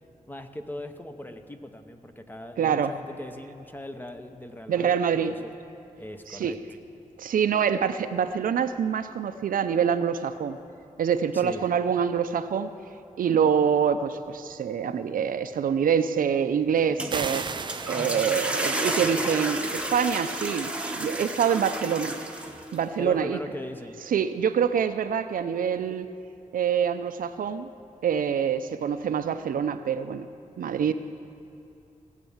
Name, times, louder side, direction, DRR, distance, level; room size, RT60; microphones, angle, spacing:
voice 1, 0.3-5.5 6.0-6.6 11.3-11.6 18.3-18.6 23.0-24.0, left 1 dB, 15° left, 7 dB, 0.8 m, -39 dB
voice 2, 2.6-2.9 4.7-5.3 6.3-6.5 7.2-10.6 11.0-12.7 13.2-17.4 17.9-20.7 21.0-22.1 22.7-23.4 24.1-26.1 26.5-27.7 28.0-30.3 30.6-30.9, right 7 dB, 85° right, 10 dB, 0.6 m, -25 dB
sound 1, 16.8-22.8, right 1 dB, 10° right, 1.0 m, -31 dB
sound 2, 17.1-19.1, right 5 dB, 35° right, 0.4 m, -35 dB
17.0 x 8.3 x 7.2 m, 2.7 s
wide cardioid pair, 140°, 14 cm